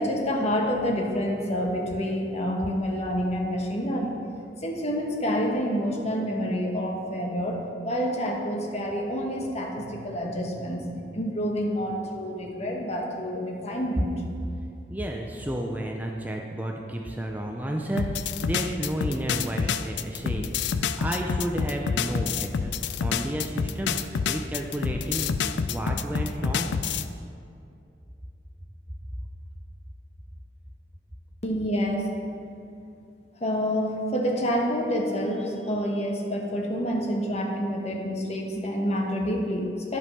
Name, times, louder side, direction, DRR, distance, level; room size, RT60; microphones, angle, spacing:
voice 1, 0.0-4.2 4.6-14.2 31.4-32.1 33.4-40.0, equal, 40° left, 0 dB, 1.2 m, -28 dB
voice 2, 14.9-26.8, right 1 dB, 10° right, 1 dB, 0.5 m, -32 dB
sound 1, 18.0-27.1, left 6 dB, 75° left, 0.4 m, -28 dB
11.0 x 5.3 x 5.6 m, 2.5 s
head